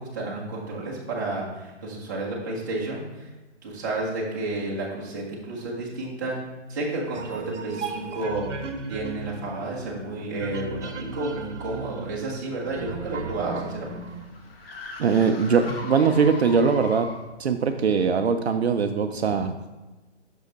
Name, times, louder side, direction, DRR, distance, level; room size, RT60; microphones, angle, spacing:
voice 1, 0.0-3.3 3.6-6.4 6.7-8.6 8.9-14.0, right 2 dB, 15° right, -5 dB, 0.9 m, -31 dB
sound 1, 7.1-14.3, right 4 dB, 85° right, 0.9 m, -36 dB
sound 2, 13.2-17.4, left 3 dB, 55° left, 1.2 m, -40 dB
voice 2, 15.0-17.1 17.4-19.5, right 5 dB, 60° right, 7 dB, 0.6 m, -21 dB
6.3 x 5.1 x 4.0 m, 1.2 s
hypercardioid pair, 170°, 35 cm